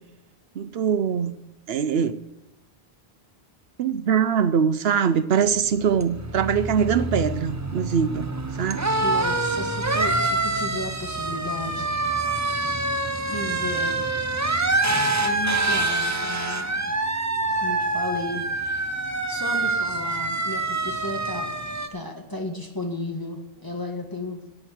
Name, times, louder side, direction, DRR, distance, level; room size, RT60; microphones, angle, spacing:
voice 1, 0.6-1.3 1.7-2.2 3.8-8.3 8.6-8.9, right 7 dB, 70° right, 13 dB, 1.0 m, -22 dB
sound 1, 5.5-21.9, right 2 dB, 20° right, 0.7 m, -26 dB
voice 2, 9.0-11.9 13.3-14.1 15.2-17.0 17.6-18.9 19.3-21.5 21.9-24.4, left 1 dB, 20° left, 2 dB, 1.6 m, -33 dB
10.5 x 8.9 x 8.0 m, 0.99 s
omnidirectional pair, 1.1 m